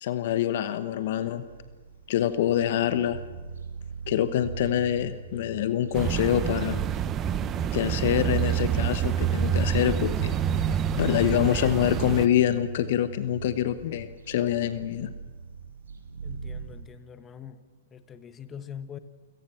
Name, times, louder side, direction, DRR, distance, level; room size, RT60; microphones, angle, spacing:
voice 1, 0.0-1.4 2.1-3.2 4.1-6.8 7.7-10.7 11.0-15.1, left 11 dB, 60° left, 12 dB, 1.1 m, -26 dB
sound 1, 1.1-16.8, right 5 dB, 80° right, 4.1 m, -41 dB
sound 2, 5.9-12.3, right 9 dB, 25° right, 1.0 m, -27 dB
voice 2, 16.2-17.6 17.9-19.0, left 8 dB, 20° left, 11 dB, 1.3 m, -43 dB
29.0 x 17.5 x 6.0 m, 1.3 s
hypercardioid pair, 120°, 0 cm